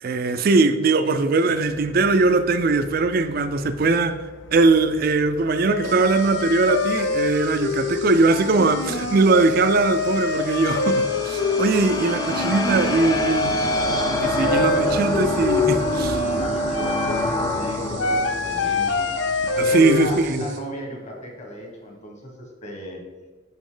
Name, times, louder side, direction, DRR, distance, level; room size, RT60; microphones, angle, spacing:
voice 1, 0.0-4.2 4.5-13.8 14.2-16.2 19.6-20.5, right 3 dB, 50° right, 0.4 m, -20 dB
sound 1, 1.7-3.1 3.3-4.1 4.4-20.3, left 4 dB, 75° left, 0.4 m, -26 dB
sound 2, 5.2-5.3 5.8-20.6, right 6 dB, 75° right, 1.0 m, -42 dB
sound 3, 9.4-19.7, left 1 dB, 20° left, 0.5 m, -27 dB
voice 2, 16.2-23.0, equal, 35° left, 1.3 m, -36 dB
7.2 x 5.3 x 3.8 m
head